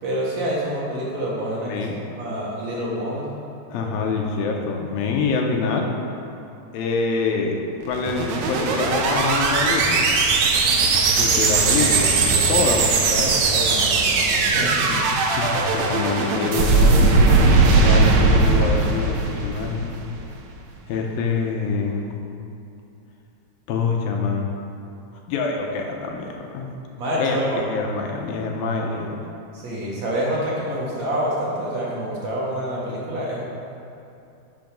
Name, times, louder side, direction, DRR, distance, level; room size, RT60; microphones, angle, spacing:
voice 1, 0.0-1.8 2.2-3.3 12.5-12.7 13.1-15.0 15.4-15.6 27.0-27.6 29.5-33.4, equal, 55° right, -6 dB, 2.4 m, -27 dB
voice 2, 1.6-2.0 3.7-5.9 6.7-10.1 11.1-13.4 14.9-15.0 15.3-17.0 17.6-19.9 20.9-22.2 23.7-24.5 25.3-26.7 27.2-29.2, left 4 dB, 80° left, 1 dB, 2.6 m, -26 dB
sound 1, 7.8-20.2, right 3 dB, 75° right, 1.6 m, -19 dB
12.0 x 6.2 x 5.2 m, 2.6 s
omnidirectional pair, 4.3 m